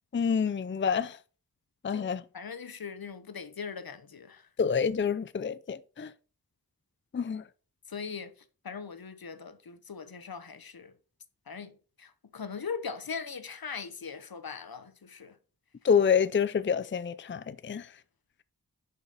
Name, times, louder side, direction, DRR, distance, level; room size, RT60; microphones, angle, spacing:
voice 1, 0.1-1.2 1.8-2.2 4.6-6.1 7.1-7.4 15.8-17.9, left 6 dB, 35° left, 0.5 m, -27 dB
voice 2, 2.3-4.5 7.9-8.3 8.6-10.9 11.5-11.7 12.0-15.4, left 5 dB, 80° left, 1.0 m, -40 dB
10.5 x 5.7 x 4.1 m
wide cardioid pair, 60°, 36 cm